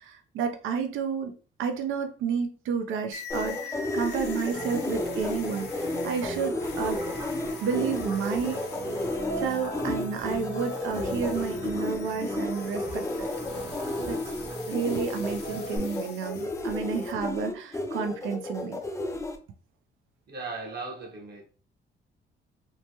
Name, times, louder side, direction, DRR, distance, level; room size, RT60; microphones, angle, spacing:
voice 1, 0.0-1.3 1.6-7.0 7.6-8.6 9.4-13.3 14.1-14.2 14.7-18.8, right 6 dB, 80° right, 0.4 m, -31 dB
sound 1, 3.1-17.1, left 6 dB, 60° left, 0.6 m, -45 dB
sound 2, 3.3-19.4, left 2 dB, 15° left, 0.5 m, -32 dB
sound 3, 4.5-15.8, right 2 dB, 30° right, 0.7 m, -39 dB
voice 2, 20.3-21.4, right 3 dB, 55° right, 1.0 m, -37 dB
3.0 x 2.1 x 2.7 m
cardioid pair, 90°, 20 cm